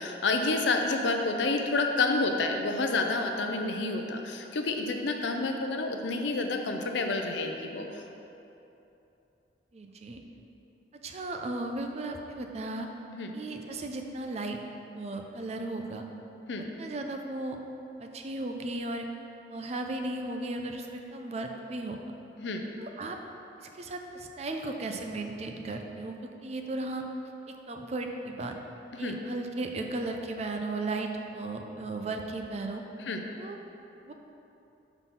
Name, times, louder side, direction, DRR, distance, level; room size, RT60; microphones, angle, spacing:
voice 1, 0.0-7.9 13.1-13.3 16.5-16.7 22.4-22.6 29.0-29.2 33.1-33.2, left 3 dB, 80° left, 4 dB, 0.6 m, -29 dB
voice 2, 9.7-10.2 11.0-12.9 13.3-14.6 14.9-16.0 16.8-17.6 18.0-19.1 19.5-22.0 22.8-23.2 23.6-27.0 27.5-28.6 29.0-32.8 33.4-33.6 34.1-34.2, right 2 dB, 35° right, 3 dB, 0.4 m, -35 dB
5.4 x 4.0 x 5.9 m, 2.9 s
head